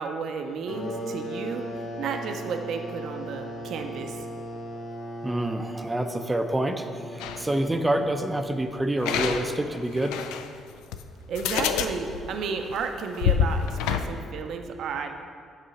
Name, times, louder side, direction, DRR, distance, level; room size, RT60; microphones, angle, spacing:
voice 1, 0.0-1.6 2.0-4.2 11.3-15.1, right 5 dB, 70° right, 5 dB, 0.6 m, -32 dB
sound 1, 0.7-9.1, equal, 65° left, 1.0 m, -38 dB
voice 2, 5.2-10.2, right 1 dB, 15° right, 6 dB, 0.5 m, -27 dB
sound 2, 7.2-7.5 9.0-10.5 10.9-11.0 11.3-14.0, left 8 dB, 85° left, 0.3 m, -27 dB
8.2 x 3.8 x 5.7 m, 2.2 s
supercardioid pair, 60°, 0 cm